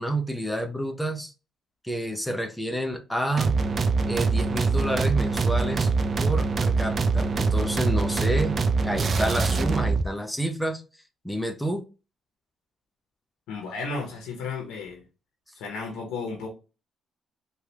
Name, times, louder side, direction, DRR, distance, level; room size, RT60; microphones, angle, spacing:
voice 1, 0.0-1.3 1.8-3.6 4.1-5.9 6.2-10.8 11.2-11.8, right 1 dB, 5° left, 0.6 m, -29 dB
sound 1, 3.4-10.1, right 4 dB, 45° right, 0.4 m, -24 dB
voice 2, 13.5-15.0 15.6-16.5, left 4 dB, 90° left, 0.8 m, -33 dB
3.3 x 2.3 x 2.8 m
cardioid pair, 90°, 0 cm